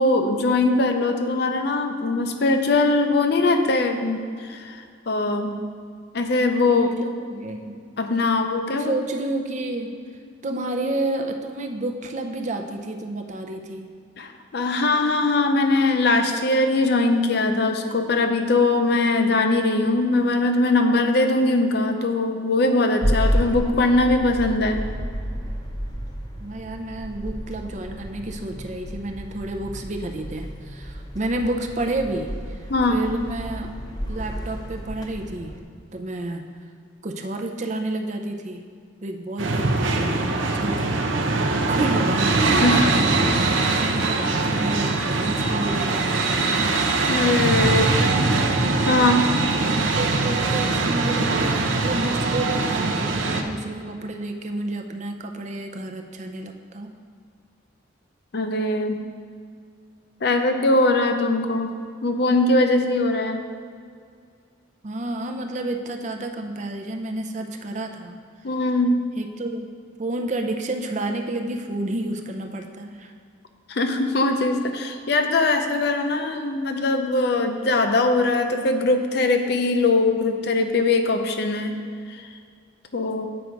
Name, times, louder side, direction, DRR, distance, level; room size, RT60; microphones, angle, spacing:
voice 1, 0.0-4.8 5.1-5.6 6.1-6.9 8.0-9.0 14.2-24.8 32.7-33.0 42.6-42.9 47.1-48.4 48.9-49.3 58.3-59.0 60.2-61.7 62.0-63.4 68.4-69.0 73.7-81.7 82.1-82.3 82.9-83.3, left 2 dB, 55° left, 6 dB, 0.5 m, -21 dB
voice 2, 6.6-7.8 8.7-9.9 10.4-13.9 26.4-33.7 34.1-35.6 35.9-36.5 37.0-38.6 39.0-40.9 41.7-42.6 43.2-46.8 47.8-48.4 49.6-56.9 64.8-68.2 69.2-69.7 70.0-73.1, right 2 dB, 40° right, 4 dB, 0.5 m, -30 dB
sound 1, 23.0-35.6, equal, 20° left, 0.7 m, -30 dB
sound 2, 39.4-53.4, right 3 dB, 85° right, 0.6 m, -22 dB
7.8 x 4.6 x 5.1 m, 2.2 s
head